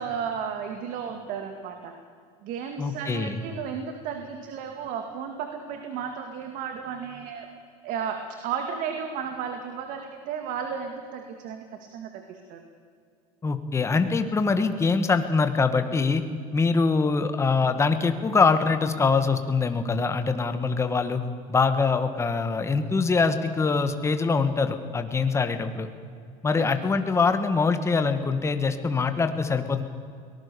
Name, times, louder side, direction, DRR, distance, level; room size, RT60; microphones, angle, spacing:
voice 1, 0.0-1.9 2.4-7.5 7.8-12.6 26.6-26.7, right 7 dB, 55° right, 5 dB, 2.2 m, -34 dB
voice 2, 2.8-3.4 13.4-16.2 16.5-21.2 21.5-25.9 26.4-29.8, left 4 dB, 15° left, 9 dB, 1.7 m, -23 dB
23.0 x 19.5 x 7.0 m, 2.3 s
supercardioid pair, 135°, 16 cm